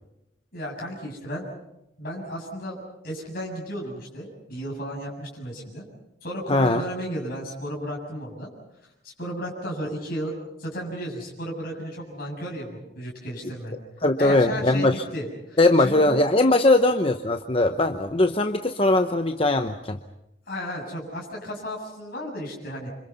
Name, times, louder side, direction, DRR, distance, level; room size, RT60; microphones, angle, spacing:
voice 1, 0.5-1.5 2.0-5.9 6.2-8.5 9.0-10.3 10.6-13.8 14.2-16.1 20.5-22.9, equal, 50° left, -2 dB, 7.4 m, -34 dB
voice 2, 6.5-6.8 14.0-15.0 15.6-20.0, left 2 dB, 30° left, 7 dB, 0.8 m, -20 dB
28.0 x 26.0 x 5.7 m, 0.86 s
head